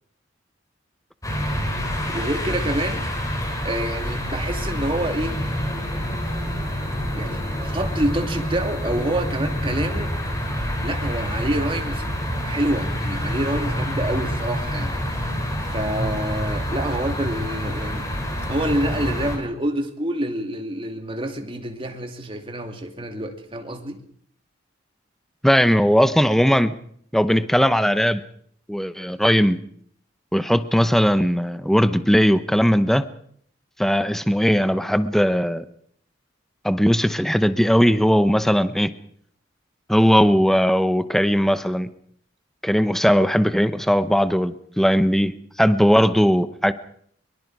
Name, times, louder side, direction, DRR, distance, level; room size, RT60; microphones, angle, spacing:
sound 1, 1.2-19.4, equal, 20° left, 6.0 m, -27 dB
voice 1, 2.1-3.0 3.6-5.4 7.2-10.1 10.8-12.1 12.4-15.5 15.7-18.1 18.5-24.0, right 1 dB, 30° right, 2.6 m, -27 dB
voice 2, 25.4-26.8 27.1-28.2 28.7-29.6 30.3-33.1 33.8-35.6 36.6-38.9 39.9-41.9 42.6-45.3 45.6-46.7, equal, ahead, 0.8 m, -18 dB
23.5 x 23.0 x 4.8 m
head